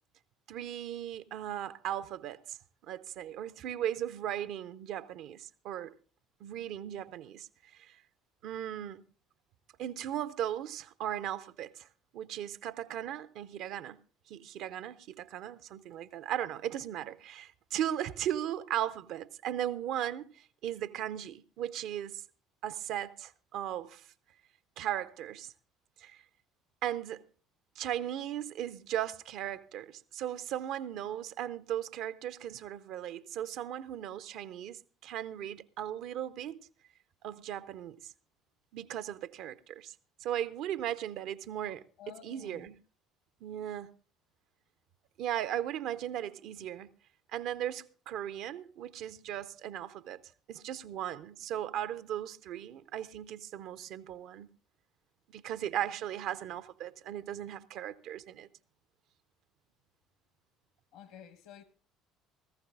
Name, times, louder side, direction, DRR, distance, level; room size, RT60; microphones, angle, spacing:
voice 1, 0.5-2.6 2.8-6.0 6.4-7.5 7.7-8.0 8.4-9.0 9.8-11.9 12.1-14.0 14.3-22.2 22.6-24.1 24.8-25.5 26.0-26.2 26.8-27.2 27.8-36.7 37.2-38.1 38.7-39.9 40.2-41.9 42.2-42.8 43.4-43.9 45.2-46.9 47.3-50.2 50.5-54.5 55.3-58.5, right 11 dB, 55° right, 0.5 m, -37 dB
voice 2, 42.0-42.7 55.6-55.8 60.9-61.6, left 10 dB, 60° left, 1.1 m, -52 dB
18.0 x 14.5 x 2.4 m
figure-of-eight pair, 55°, 0 cm